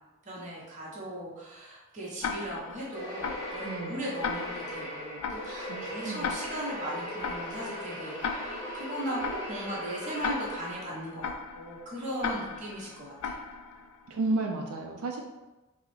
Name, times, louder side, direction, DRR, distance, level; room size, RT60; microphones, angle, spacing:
voice 1, 0.2-13.4, right 1 dB, 35° right, -5 dB, 0.9 m, -38 dB
Tick-tock, 2.2-14.1, left 5 dB, 90° left, 0.3 m, -38 dB
sound 1, 2.9-11.2, equal, 20° left, 0.8 m, -39 dB
voice 2, 3.7-4.0 5.7-6.3 14.1-15.2, right 2 dB, 85° right, 1 dB, 0.4 m, -32 dB
3.6 x 2.1 x 3.1 m, 1.1 s
head